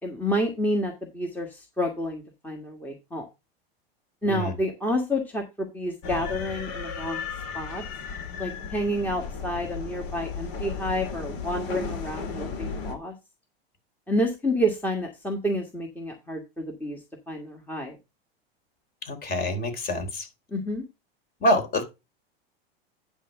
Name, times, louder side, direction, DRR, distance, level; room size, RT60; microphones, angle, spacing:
voice 1, 0.0-3.2 4.2-7.2 7.5-7.8 8.4-13.1 14.1-17.0 17.3-18.0 20.5-20.8, equal, 5° left, 1 dB, 1.6 m, -29 dB
sound 1, 6.0-12.9, left 5 dB, 50° left, 2.9 m, -35 dB
voice 2, 19.1-20.3 21.4-21.8, equal, 30° left, 6 dB, 3.4 m, -26 dB
9.9 x 3.6 x 7.0 m, 0.25 s
hypercardioid pair, 110°, 31 cm